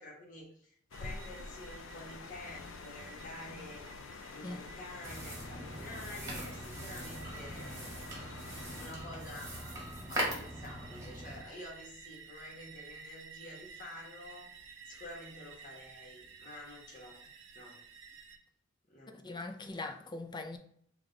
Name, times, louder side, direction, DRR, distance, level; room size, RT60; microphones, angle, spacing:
voice 1, 0.0-7.9 8.8-17.2 17.5-17.8 18.9-19.2, left 1 dB, 45° left, 1.3 m, -49 dB
sound 1, 0.9-8.9, left 4 dB, 80° left, 0.4 m, -48 dB
sound 2, 0.9-18.4, right 6 dB, 70° right, 0.6 m, -54 dB
sound 3, 5.0-11.4, right 1 dB, 15° right, 1.5 m, -41 dB
voice 2, 19.1-20.6, left 2 dB, 25° left, 0.5 m, -41 dB
5.0 x 2.4 x 3.8 m
head